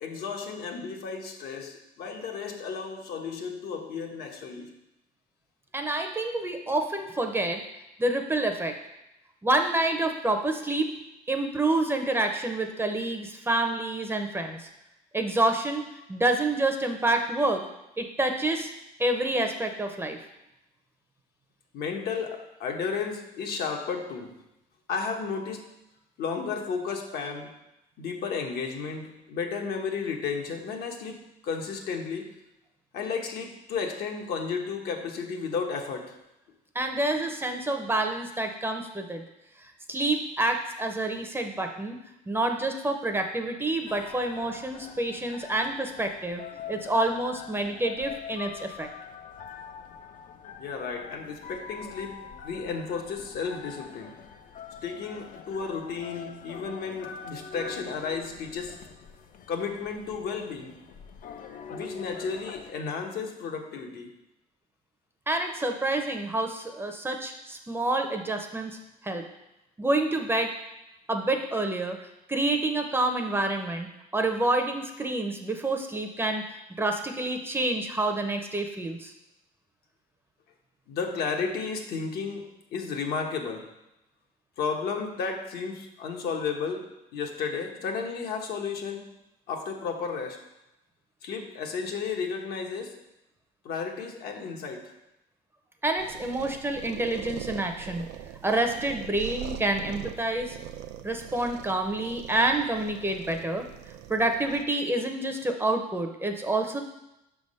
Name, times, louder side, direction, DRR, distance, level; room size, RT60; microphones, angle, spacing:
voice 1, 0.0-4.8 21.7-24.4 24.9-25.7 26.2-27.5 28.0-32.4 32.9-36.2 50.6-54.2 54.8-58.8 59.5-60.8 61.7-64.2 80.9-83.7 84.6-89.1 89.5-90.4 91.2-93.0 93.6-95.0, left 5 dB, 70° left, 2 dB, 1.0 m, -33 dB
voice 2, 5.7-7.6 8.0-8.7 9.4-10.9 11.3-14.7 15.1-15.8 16.1-17.6 18.0-18.7 19.0-20.2 36.7-39.2 39.9-42.0 42.3-46.4 46.7-48.9 65.3-68.8 69.0-69.2 69.8-70.5 71.1-72.0 72.3-76.4 76.8-79.1 95.8-98.1 98.4-100.6 101.0-103.7 104.1-106.8, right 2 dB, 15° right, 4 dB, 0.6 m, -28 dB
sound 1, 43.9-62.7, left 6 dB, 55° left, 0.5 m, -44 dB
sound 2, 96.0-104.6, right 11 dB, 80° right, 0.4 m, -42 dB
5.9 x 3.5 x 5.3 m, 0.89 s
cardioid pair, 110°, 17 cm